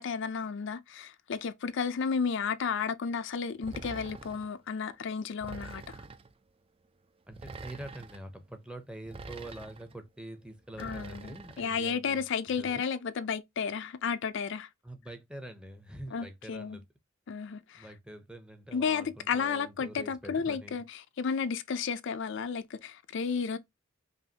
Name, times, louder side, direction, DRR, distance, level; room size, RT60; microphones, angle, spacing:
voice 1, 0.0-6.0 10.8-14.7 16.1-16.8 17.3-17.8 18.7-23.6, left 6 dB, 60° left, 0.4 m, -33 dB
sound 1, 3.6-4.5 5.4-6.3 7.3-8.2 9.1-9.9 10.8-11.7, right 3 dB, 30° right, 0.4 m, -45 dB
voice 2, 7.3-12.2 12.6-12.8 14.8-16.8 17.7-20.8, right 1 dB, 5° right, 0.7 m, -45 dB
5.4 x 2.5 x 2.7 m
head